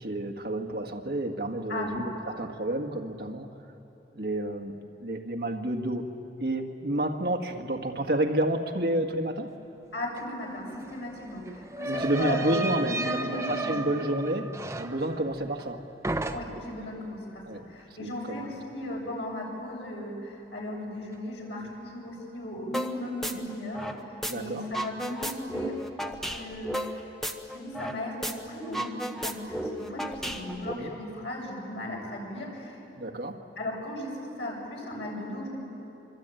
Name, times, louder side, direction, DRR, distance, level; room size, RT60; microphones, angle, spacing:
voice 1, 0.0-3.5 4.1-6.1 6.4-9.5 11.9-15.8 17.5-17.6 18.0-18.5 24.2-24.7 30.7-30.9 33.0-33.4, right 1 dB, 60° right, 3 dB, 1.8 m, -30 dB
voice 2, 1.7-2.0 9.9-13.7 16.3-17.4 17.7-25.8 26.0-27.0 27.5-32.8 33.6-35.6, left 1 dB, 90° left, -2 dB, 7.5 m, -36 dB
sound 1, 10.2-10.3 10.5-15.8 16.0-16.8, right 2 dB, 15° right, 0.8 m, -34 dB
sound 2, 22.7-22.9 23.2-24.3 24.6-28.0 28.2-28.3 28.6-30.7, equal, ahead, 1.2 m, -33 dB
25.0 x 24.5 x 9.1 m, 2.9 s
head